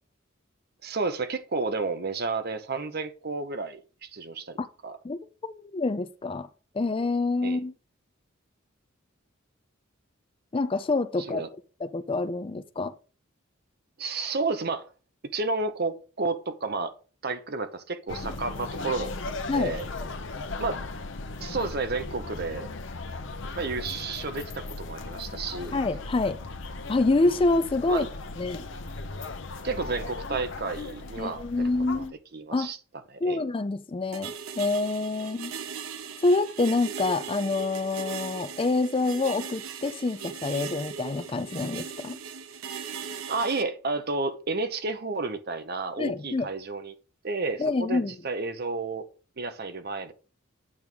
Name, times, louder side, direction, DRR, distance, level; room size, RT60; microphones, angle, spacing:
voice 1, 0.8-5.0 7.4-7.6 11.2-11.5 14.0-14.9 15.2-16.9 17.2-19.9 20.6-20.8 21.4-22.7 23.6-25.8 27.9-28.1 29.6-31.4 31.9-32.1 32.3-32.8 33.1-33.4 43.3-46.9 47.2-49.1 49.4-50.1, right 3 dB, 50° right, 0.8 m, -31 dB
voice 2, 5.0-6.5 6.7-7.7 10.5-11.4 11.8-12.9 18.3-18.4 19.5-19.7 25.7-26.4 26.9-28.1 28.4-28.6 31.2-32.1 32.5-32.7 33.2-35.5 36.2-42.2 46.0-46.5 47.6-48.1, left 3 dB, 25° left, 0.4 m, -27 dB
sound 1, 18.1-32.1, left 3 dB, 65° left, 0.8 m, -37 dB
sound 2, 34.1-43.6, right 7 dB, 85° right, 0.7 m, -38 dB
8.6 x 3.6 x 6.1 m
head